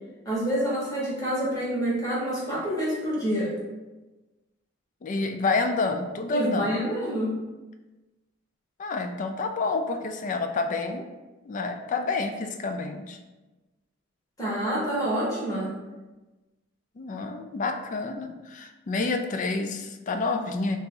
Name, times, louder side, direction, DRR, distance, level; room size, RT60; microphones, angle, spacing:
voice 1, 0.2-3.6 6.3-7.4 14.4-15.7, equal, 20° left, -6 dB, 1.1 m, -27 dB
voice 2, 5.0-6.8 8.8-11.1 11.5-13.2 17.0-20.8, left 3 dB, 40° left, 6 dB, 0.3 m, -28 dB
2.8 x 2.6 x 3.7 m, 1.1 s
head